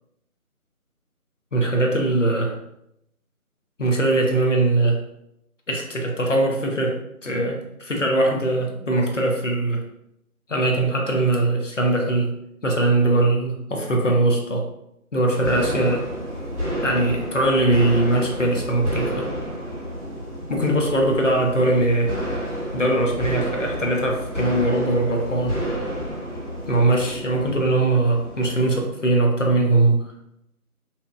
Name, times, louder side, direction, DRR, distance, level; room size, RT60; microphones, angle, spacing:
voice 1, 1.5-2.6 3.8-5.0 5.7-9.8 10.5-12.3 12.6-14.7 15.1-16.1 16.8-19.3 20.5-22.1 22.7-25.6 26.7-30.1, right 2 dB, 55° left, 1 dB, 0.5 m, -21 dB
sound 1, 15.4-28.8, equal, 50° right, 0.6 m, -30 dB
2.7 x 2.1 x 2.4 m, 0.79 s
figure-of-eight pair, 170°, 45 cm